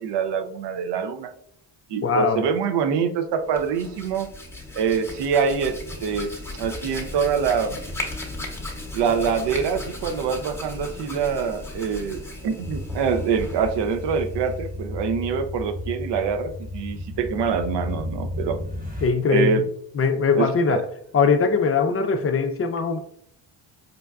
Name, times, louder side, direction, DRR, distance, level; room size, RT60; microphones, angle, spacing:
voice 1, 0.0-1.3 1.9-4.3 4.7-5.8 6.0-7.8 8.9-18.6 19.3-19.6 20.3-20.8, right 6 dB, 65° right, 0.6 m, -25 dB
voice 2, 2.0-2.4 19.0-19.6 20.0-20.8 21.1-23.0, left 5 dB, 30° left, 0.5 m, -21 dB
Hands, 3.4-14.8, left 1 dB, 5° left, 0.8 m, -36 dB
sound 1, 12.6-19.1, left 1 dB, 20° right, 1.0 m, -33 dB
5.2 x 2.2 x 2.3 m
supercardioid pair, 70°, 45 cm